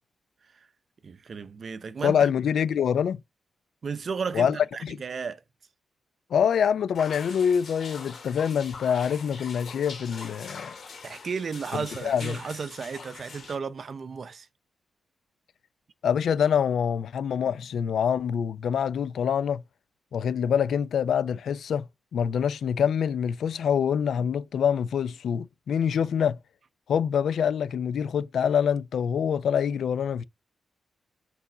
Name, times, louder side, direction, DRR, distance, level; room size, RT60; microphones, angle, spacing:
voice 1, 1.0-2.3 3.8-5.4 11.0-14.5, right 5 dB, 40° right, 0.6 m, -34 dB
voice 2, 2.0-3.2 4.3-4.6 4.8-5.0 6.3-10.7 11.7-12.4 16.0-19.6 20.1-21.8 22.1-26.4 26.9-30.2, left 8 dB, 70° left, 0.5 m, -25 dB
sound 1, 6.9-13.5, left 5 dB, 50° left, 3.2 m, -43 dB
6.9 x 4.2 x 4.8 m
wide cardioid pair, 170°, 0 cm